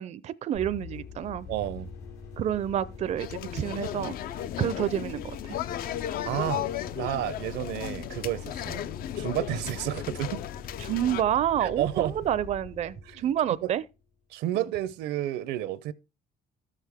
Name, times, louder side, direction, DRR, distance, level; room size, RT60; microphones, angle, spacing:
voice 1, 0.0-1.5 2.4-4.2 4.6-5.6 10.8-13.8, right 10 dB, 40° right, 0.4 m, -29 dB
sound 1, 0.5-14.0, left 5 dB, 85° left, 2.6 m, -44 dB
voice 2, 1.5-1.9 6.2-6.7 6.9-8.9 9.2-10.4 11.6-12.2 13.1-13.3 13.6-13.7 14.3-15.9, right 13 dB, 85° right, 0.6 m, -31 dB
sound 2, 3.2-11.2, left 11 dB, 60° left, 0.5 m, -35 dB
13.0 x 6.6 x 3.5 m
cardioid pair, 110°, 17 cm